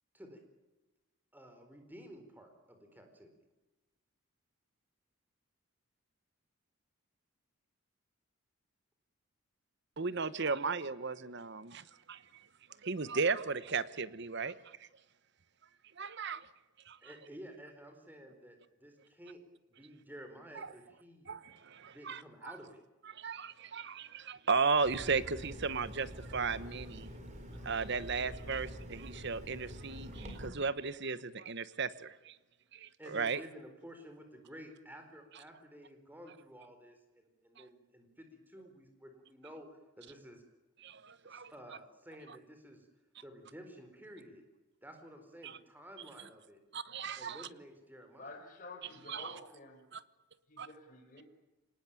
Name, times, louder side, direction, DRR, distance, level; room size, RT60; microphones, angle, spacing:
voice 1, 1.3-3.3 17.0-19.4 19.7-21.3 21.9-22.8 33.0-39.7 40.0-40.4 41.2-42.9 43.2-44.4 44.8-46.6 47.2-48.3, equal, 10° right, 5 dB, 4.3 m, -52 dB
voice 2, 10.0-12.5 12.8-14.9 16.0-16.5 16.9-17.0 20.6-20.7 21.3-22.5 23.0-27.1 27.6-32.3 32.7-33.4 37.6-37.7 40.8-41.5 45.4-45.6 46.7-47.5 49.1-49.3 49.9-50.0 50.6-50.7, right 4 dB, 50° right, 15 dB, 1.0 m, -36 dB
sound 1, 24.8-30.5, equal, 30° right, 4.3 m, -46 dB
voice 3, 48.2-49.8 50.5-51.2, left 2 dB, 35° left, 3 dB, 5.8 m, -50 dB
26.5 x 19.5 x 9.0 m, 1.1 s
head